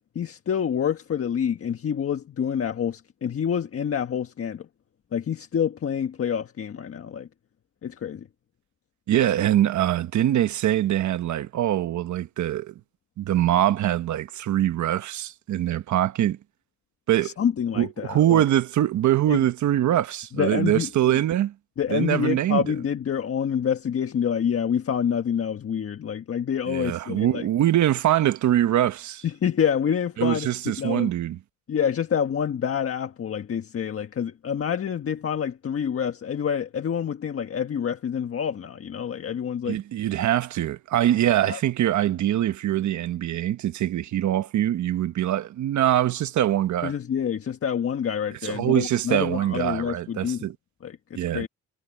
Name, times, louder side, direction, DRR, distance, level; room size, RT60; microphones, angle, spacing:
voice 1, 0.1-4.7 5.1-7.3 7.8-8.3 17.2-18.4 19.3-19.4 20.3-21.1 21.8-27.5 29.2-30.5 30.8-31.1 31.7-39.8 41.4-41.6 46.8-50.5 50.8-51.5, left 8 dB, 50° left, 1.5 m, -27 dB
voice 2, 9.1-12.7 13.2-16.4 17.1-17.3 17.7-21.5 21.9-22.6 26.7-29.2 30.2-31.4 39.7-46.9 48.4-50.5 51.2-51.5, right 12 dB, 70° right, 1.3 m, -23 dB
cardioid pair, 90°, 30 cm